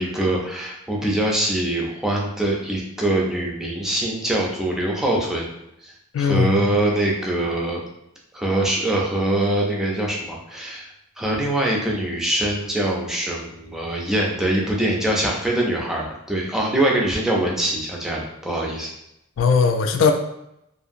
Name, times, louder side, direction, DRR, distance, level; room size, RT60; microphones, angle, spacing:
voice 1, 0.0-5.5 5.8-7.8 8.3-10.9 11.2-18.9, right 1 dB, 5° right, -3 dB, 0.4 m, -23 dB
voice 2, 6.1-6.6 19.4-20.1, left 5 dB, 65° left, 5 dB, 0.3 m, -18 dB
2.7 x 2.5 x 2.5 m, 0.82 s
head